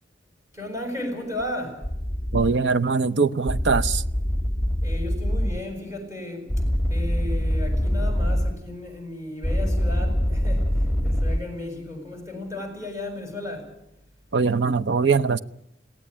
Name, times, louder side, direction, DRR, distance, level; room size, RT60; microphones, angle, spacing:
voice 1, 0.5-1.8 4.8-6.5 6.9-13.7, left 1 dB, 15° right, 7.0 m, -34 dB
sound 1, 1.8-2.5 3.5-5.6 6.5-8.5 9.4-11.4, equal, 5° left, 2.1 m, -24 dB
voice 2, 2.3-4.0 14.3-15.4, right 4 dB, 75° right, 0.7 m, -22 dB
22.0 x 17.5 x 8.8 m
head